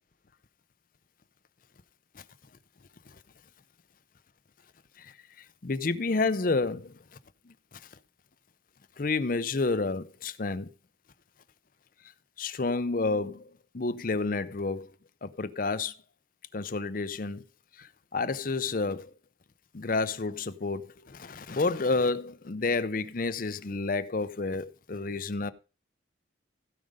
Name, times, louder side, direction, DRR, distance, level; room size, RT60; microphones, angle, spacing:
voice 1, 5.0-6.9 7.5-7.6 9.0-10.7 12.4-14.9 15.2-16.0 16.5-17.4 17.8-19.1 19.7-25.5, left 3 dB, 45° left, 0.6 m, -30 dB
16.0 x 5.3 x 5.1 m
head